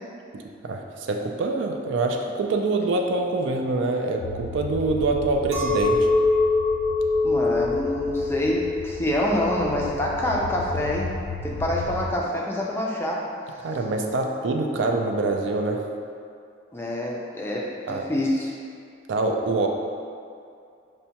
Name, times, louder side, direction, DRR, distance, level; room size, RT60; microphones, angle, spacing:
voice 1, 0.6-6.1 13.6-15.8 17.9-18.1 19.1-19.7, right 3 dB, 75° right, 2 dB, 0.3 m, -25 dB
sound 1, 4.2-12.2, left 3 dB, 85° left, 0.3 m, -36 dB
Chink clink, 5.5-11.0, left 3 dB, 30° right, 0.6 m, -24 dB
voice 2, 7.2-11.1 11.4-13.2 16.7-18.5, left 1 dB, 10° left, -3 dB, 0.3 m, -26 dB
5.4 x 2.1 x 2.8 m, 2.4 s
head